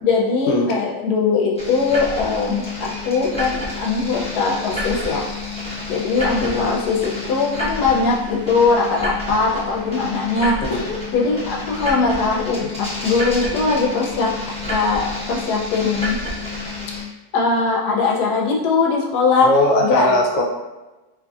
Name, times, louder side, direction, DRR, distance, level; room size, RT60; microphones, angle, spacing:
voice 1, 0.0-5.3 5.9-10.8 11.1-14.3 14.7-16.2 17.3-19.5 19.8-20.1, left 4 dB, 85° left, -2 dB, 1.1 m, -20 dB
sound 1, 1.6-17.0, left 2 dB, 10° left, 0.3 m, -29 dB
voice 2, 6.4-6.7 10.7-11.0 19.4-20.4, left 1 dB, 65° left, -1 dB, 0.8 m, -19 dB
2.8 x 2.5 x 2.3 m, 1.1 s
omnidirectional pair, 1.7 m